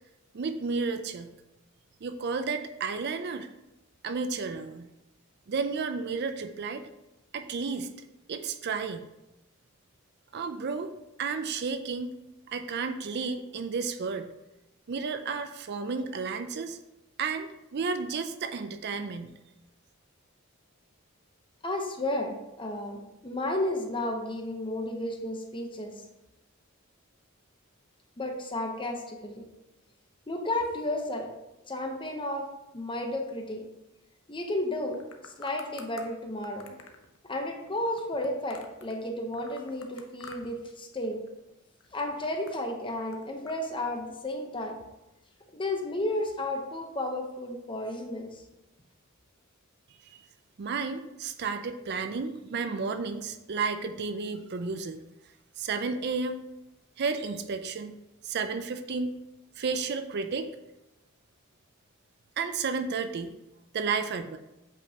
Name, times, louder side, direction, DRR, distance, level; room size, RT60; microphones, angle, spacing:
voice 1, 0.3-1.3 2.0-3.5 4.0-4.9 5.5-6.9 7.3-7.9 8.3-9.1 10.3-10.9 11.2-12.1 12.5-14.3 14.9-16.8 17.2-19.3 50.1-50.2 50.6-55.0 55.6-56.4 57.0-57.9 58.2-59.1 59.6-60.5 62.4-63.3 63.7-64.4, right 4 dB, 50° right, 9 dB, 0.4 m, -32 dB
voice 2, 21.6-25.9 28.2-29.4 30.3-31.3 31.7-32.5 32.7-33.6 34.3-35.0 35.2-36.8 37.3-41.2 41.9-44.8 45.5-48.4, left 1 dB, 25° left, 3 dB, 0.8 m, -32 dB
sound 1, 34.8-36.1 36.4-39.0 39.3-40.7 40.9-41.4 41.8-43.6, left 4 dB, 70° left, 0.8 m, -50 dB
8.2 x 5.2 x 2.9 m, 0.95 s
head